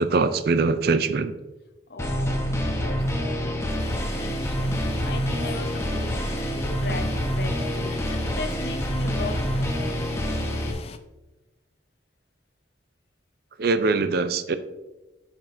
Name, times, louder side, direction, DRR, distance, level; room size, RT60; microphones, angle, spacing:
voice 1, 0.0-1.3 13.6-14.6, right 3 dB, 55° right, 12 dB, 0.4 m, -22 dB
voice 2, 1.9-3.8 4.2-4.8 5.0-10.3, left 3 dB, 55° left, 6 dB, 0.7 m, -38 dB
sound 1, 2.0-10.7, equal, 15° left, 0.8 m, -27 dB
sound 2, 3.8-11.0, left 4 dB, 30° left, 0.3 m, -42 dB
8.5 x 6.0 x 2.6 m, 1.1 s
head